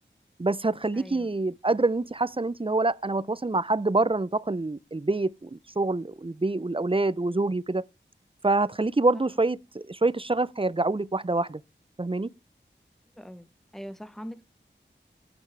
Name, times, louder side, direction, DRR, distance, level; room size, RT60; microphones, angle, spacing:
voice 1, 0.4-7.8 8.4-11.6 12.0-12.3, right 2 dB, 25° right, 0.6 m, -26 dB
voice 2, 0.9-1.3 13.2-13.5 13.7-14.4, equal, ahead, 0.9 m, -41 dB
15.5 x 9.6 x 3.4 m
wide cardioid pair, 45°, 20 cm